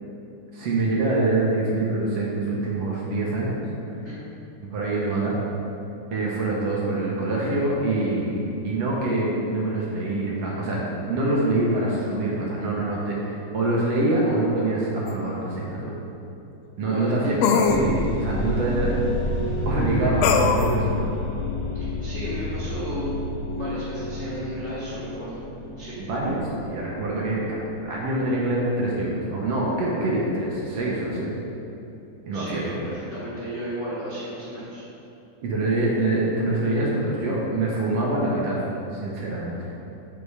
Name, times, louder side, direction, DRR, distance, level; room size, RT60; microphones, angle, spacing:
voice 1, 0.5-3.6 4.7-5.4 6.1-16.0 16.8-19.0 19.7-21.0 26.0-31.3 32.3-32.8 35.4-38.6 38.9-39.7, right 2 dB, 65° right, -4 dB, 1.8 m, -25 dB
sound 1, 15.1-15.2 17.4-17.8 20.2-20.7, left 6 dB, 85° left, 1.5 m, -20 dB
voice 2, 16.8-17.5 21.7-23.1 23.6-25.4 25.8-26.0 32.3-34.8, equal, 70° left, -10 dB, 0.6 m, -34 dB
sound 2, 17.6-31.7, left 1 dB, 45° left, 1.4 m, -31 dB
6.7 x 5.1 x 4.8 m, 3.0 s
omnidirectional pair, 3.6 m